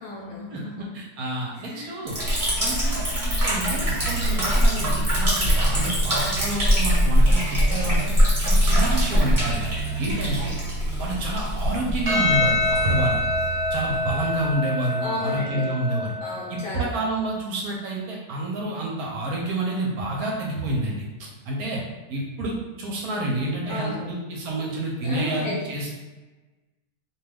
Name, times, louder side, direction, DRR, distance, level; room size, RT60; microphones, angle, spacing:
voice 1, 0.0-0.9 1.5-2.0 15.0-15.7 16.2-16.9 23.7-24.1 25.0-25.7, left 2 dB, 65° left, -5 dB, 1.0 m, -34 dB
voice 2, 0.5-2.2 2.6-8.1 8.4-9.6 10.0-10.6 11.0-12.6 12.8-13.2 13.7-16.1 16.5-21.0 21.5-21.8 22.1-25.9, right 1 dB, 70° right, -2 dB, 1.0 m, -28 dB
Liquid, 2.1-14.5, equal, 25° right, 1.1 m, -23 dB
Percussion, 12.1-16.7, left 2 dB, 45° right, 1.0 m, -26 dB
2.6 x 2.2 x 3.3 m, 1.2 s
omnidirectional pair, 1.8 m